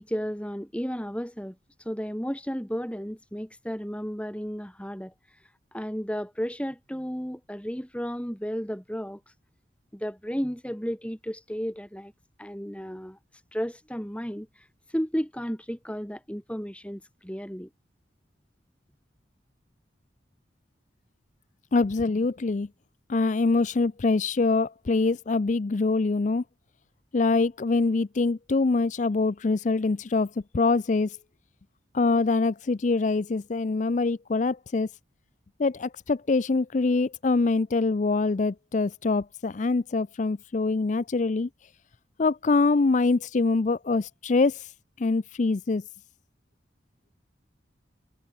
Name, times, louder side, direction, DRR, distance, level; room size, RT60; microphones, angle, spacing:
voice 1, 0.0-5.4 5.7-9.2 9.9-12.1 12.4-13.2 13.5-17.7, equal, 5° left, 3.7 m, -33 dB
voice 2, 21.7-22.7 23.1-26.4 27.1-31.2 31.9-34.9 35.6-41.5 42.2-44.7 45.0-45.8, left 3 dB, 40° left, 0.5 m, -24 dB
head